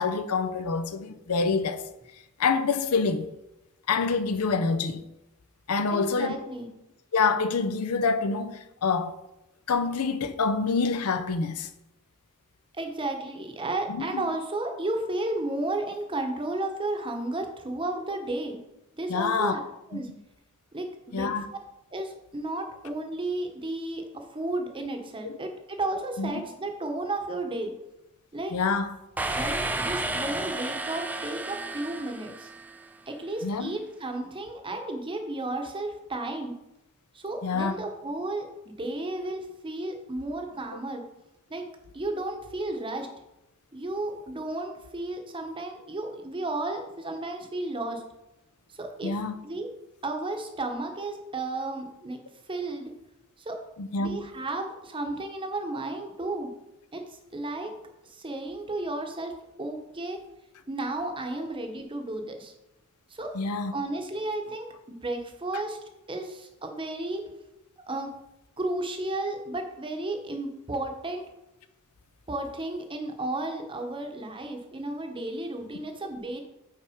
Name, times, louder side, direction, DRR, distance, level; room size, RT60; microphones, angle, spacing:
voice 1, 0.0-1.8 2.4-3.3 3.9-5.0 5.7-6.4 7.1-9.2 9.7-11.7 13.9-14.0 19.1-19.5 19.9-20.0 21.1-21.5 25.2-25.4 26.2-26.3 28.5-29.0 33.4-33.7 37.4-37.8 49.0-49.3 53.8-54.2 63.3-63.7, left 4 dB, 85° left, 0.6 m, -26 dB
voice 2, 5.9-6.7 12.7-18.6 18.9-19.6 19.9-20.1 20.7-21.3 21.9-27.7 28.3-28.6 29.3-32.5 33.1-36.6 37.1-41.0 41.5-41.6 41.9-43.1 43.7-48.0 48.7-49.2 49.4-49.7 50.0-52.2 52.5-52.9 53.4-53.6 54.0-56.5 56.9-57.7 58.0-59.3 59.6-60.2 60.7-62.5 63.1-63.3 63.7-65.8 66.1-67.3 67.9-68.1 68.6-71.2 72.3-76.4, right 2 dB, 25° right, 0.9 m, -33 dB
sound 1, 29.2-32.9, right 2 dB, 5° right, 0.3 m, -32 dB
5.7 x 4.5 x 5.0 m
head